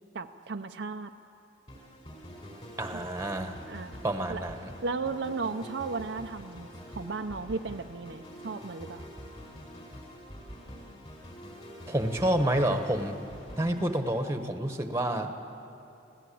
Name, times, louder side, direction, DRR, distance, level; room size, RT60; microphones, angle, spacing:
voice 1, 0.1-1.1 3.6-4.0 4.3-4.5 4.8-9.1, right 4 dB, 70° right, 5 dB, 0.6 m, -35 dB
sound 1, 1.7-14.6, equal, 35° left, 4.8 m, -46 dB
voice 2, 2.8-3.5 4.0-4.7 11.9-13.3 13.6-15.4, right 1 dB, 15° right, 6 dB, 1.2 m, -29 dB
26.0 x 16.5 x 8.6 m, 2.8 s
head